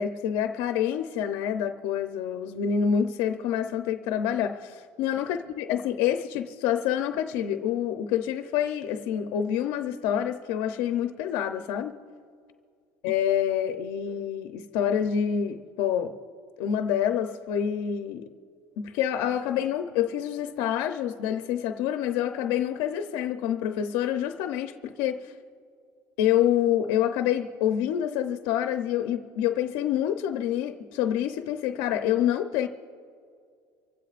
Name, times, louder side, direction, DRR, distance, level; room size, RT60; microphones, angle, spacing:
voice 1, 0.0-12.0 13.0-16.1 16.6-18.3 18.8-25.3 26.2-32.7, left 9 dB, 75° left, 0.7 m, -27 dB
26.0 x 16.0 x 2.5 m
cardioid pair, 160°, 9 cm